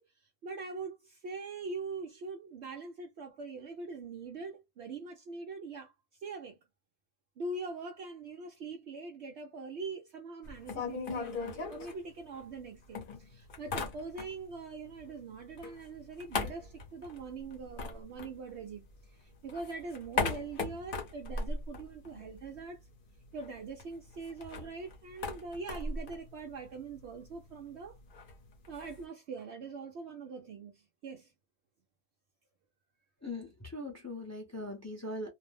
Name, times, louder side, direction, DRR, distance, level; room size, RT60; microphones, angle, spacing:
voice 1, 0.0-6.6 7.4-22.8 23.3-28.0 28.7-31.3, right 4 dB, 65° right, 0.8 m, -43 dB
sound 1, 10.4-12.6 12.9-14.6 14.8-19.0 19.3-22.6 22.9-23.0 23.2-29.0, left 4 dB, 45° left, 0.9 m, -39 dB
voice 2, 33.2-35.3, left 2 dB, 15° left, 0.6 m, -40 dB
2.6 x 2.0 x 3.3 m
omnidirectional pair, 1.4 m